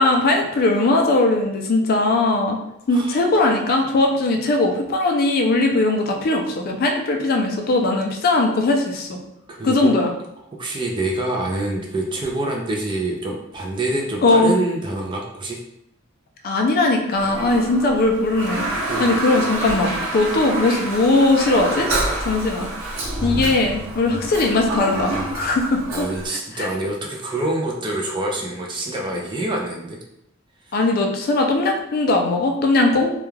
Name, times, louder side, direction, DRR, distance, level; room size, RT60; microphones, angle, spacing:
voice 1, 0.0-2.6 2.9-9.2 9.6-10.1 14.2-14.5 16.4-21.9 22.2-22.7 23.2-26.1 26.5-26.7 30.7-33.1, left 2 dB, 45° left, 2 dB, 0.4 m, -19 dB
voice 2, 2.9-3.2 9.5-9.9 10.5-15.6 18.9-19.0 25.9-30.0 30.7-30.8, right 2 dB, 25° right, 0 dB, 0.3 m, -26 dB
Toilet flush, 17.1-26.3, right 2 dB, 85° right, 0.7 m, -27 dB
2.3 x 2.2 x 3.1 m, 0.80 s
head